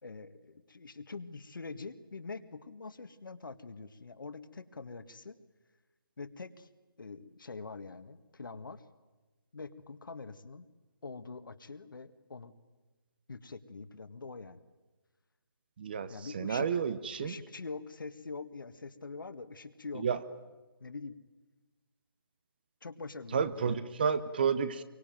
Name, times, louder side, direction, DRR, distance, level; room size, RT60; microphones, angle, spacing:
voice 1, 0.0-5.4 6.2-6.7 7.0-8.8 9.5-10.7 11.0-12.5 13.3-14.6 16.1-16.8 17.2-20.1 20.8-21.2 22.8-23.9, left 4 dB, 60° left, 10 dB, 1.8 m, -44 dB
voice 2, 15.8-17.4 19.9-20.2 23.3-24.8, right 6 dB, 25° right, 14 dB, 0.8 m, -31 dB
24.0 x 24.0 x 9.2 m, 1.2 s
figure-of-eight pair, 165°, 12 cm